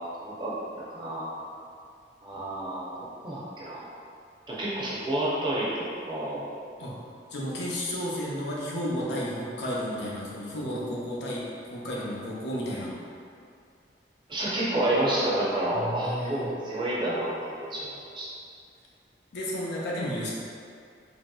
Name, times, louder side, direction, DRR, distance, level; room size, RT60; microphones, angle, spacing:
voice 1, 0.9-1.3 2.2-2.9 3.2-3.9 4.5-6.4 14.3-18.3, right 1 dB, 25° right, -7 dB, 0.5 m, -29 dB
voice 2, 7.3-12.9 15.7-16.5 19.3-20.3, equal, 85° left, -5 dB, 0.6 m, -32 dB
3.0 x 2.7 x 2.2 m, 2.3 s
head